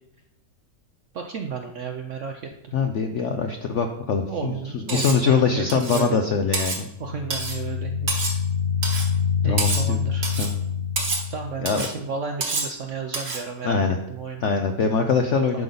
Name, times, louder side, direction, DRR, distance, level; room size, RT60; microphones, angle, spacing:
voice 1, 1.1-2.4 4.3-6.2 7.0-8.4 9.4-10.3 11.3-13.8 14.1-14.4 15.5-15.6, right 6 dB, 65° right, 4 dB, 0.7 m, -33 dB
voice 2, 2.7-6.9 9.4-10.0 10.4-10.5 11.6-11.9 13.6-14.0 14.4-15.6, left 5 dB, 70° left, 5 dB, 0.7 m, -23 dB
Cutlery silverware, 4.9-5.2 5.7-6.1 6.5-6.8 7.3-7.6 8.1-8.4 8.8-9.1 9.6-9.9 10.2-10.5 11.0-11.3 11.7-11.9 12.4-12.7 13.1-13.4, right 3 dB, 40° right, 1.3 m, -28 dB
sound 1, 6.9-11.6, left 7 dB, 45° left, 1.0 m, -26 dB
10.5 x 5.3 x 3.9 m, 0.84 s
omnidirectional pair, 1.9 m